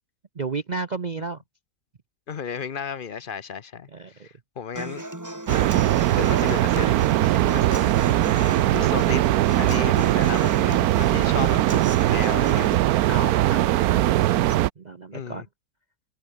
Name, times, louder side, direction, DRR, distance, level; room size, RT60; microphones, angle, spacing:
voice 1, 0.3-1.4 3.9-4.3 11.4-11.5 13.1-14.2 14.8-15.4, right 3 dB, 35° right, 0.7 m, -33 dB
voice 2, 2.3-3.9 4.2-5.0 6.0-7.9 8.3-9.2 9.6-11.6 12.0-12.7 15.1-15.4, left 7 dB, 45° left, 0.8 m, -34 dB
Human voice / Acoustic guitar, 4.8-12.7, right 1 dB, 10° right, 2.3 m, -35 dB
sound 1, 5.5-14.7, right 14 dB, 75° right, 1.1 m, -20 dB
omnidirectional pair, 1.6 m